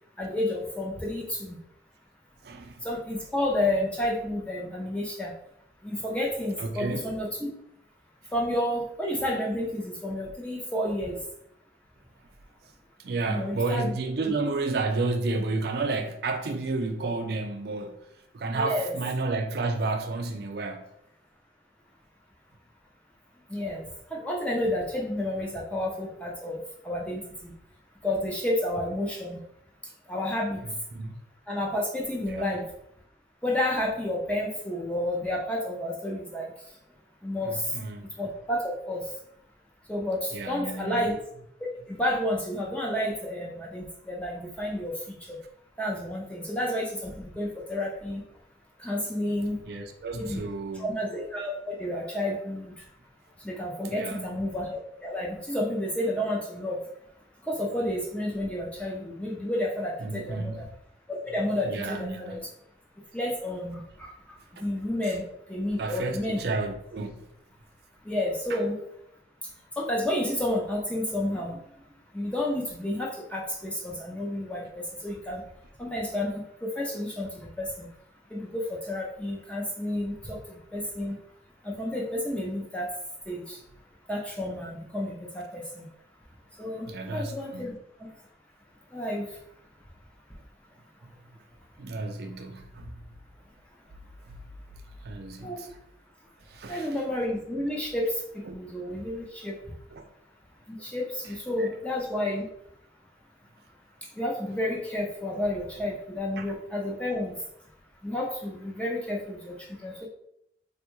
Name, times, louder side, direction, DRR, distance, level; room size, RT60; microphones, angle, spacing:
voice 1, 0.2-1.6 2.8-5.3 5.8-7.5 8.3-11.2 13.3-13.9 14.2-14.3 18.5-18.9 23.5-23.9 24.1-26.6 26.8-27.5 28.0-29.4 30.1-30.6 31.5-32.6 33.4-36.5 37.2-37.7 38.2-39.1 39.9-41.1 41.9-45.4 45.8-48.2 48.8-49.6 50.2-50.4 50.7-52.7 53.4-56.8 57.5-60.6 61.1-62.4 63.1-65.2 65.5-66.5 68.0-68.8 69.8-71.6 72.1-75.4 75.8-77.9 78.3-81.2 81.6-82.9 83.3-83.6 84.1-85.9 86.6-87.7 88.0-88.1 88.9-89.3 95.4-95.7 96.7-99.6 100.7-102.5 104.2-107.4 108.0-110.1, left 1 dB, 5° left, 0.4 m, -30 dB
voice 2, 2.4-2.9 6.6-7.0 13.0-18.0 18.3-20.9 30.9-31.1 32.3-32.6 37.4-38.0 40.3-41.1 49.7-50.9 53.8-54.4 60.0-60.7 61.6-62.4 65.1-65.2 65.8-67.1 68.5-68.6 86.8-87.8 91.0-91.1 91.8-93.0 95.0-95.7 96.5-97.0 98.4-98.6 99.9-100.0 101.6-101.7 106.4-106.5, right 3 dB, 55° right, 0.4 m, -31 dB
3.4 x 2.2 x 3.0 m
head